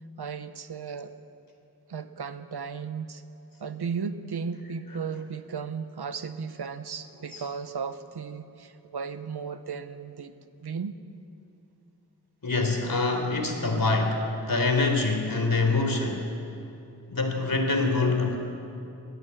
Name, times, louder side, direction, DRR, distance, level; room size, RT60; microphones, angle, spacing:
voice 1, 0.2-1.1 1.9-3.2 3.6-10.4 10.6-11.0, right 6 dB, 85° right, 11 dB, 1.0 m, -35 dB
voice 2, 12.4-16.3 17.1-18.4, left 3 dB, 60° left, 4 dB, 3.9 m, -25 dB
21.5 x 14.5 x 9.8 m, 2.7 s
cardioid pair, 45°, 38 cm